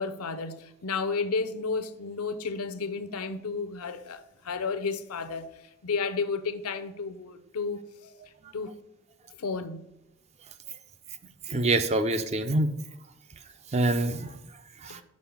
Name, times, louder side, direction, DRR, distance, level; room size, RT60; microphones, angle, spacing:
voice 1, 0.0-5.5 5.8-8.1 8.5-8.7 9.4-9.8 14.9-15.0, left 4 dB, 80° left, 0.6 m, -32 dB
voice 2, 11.5-12.7 13.7-14.3 14.8-15.0, right 2 dB, 30° right, 0.4 m, -25 dB
5.3 x 4.7 x 5.8 m
head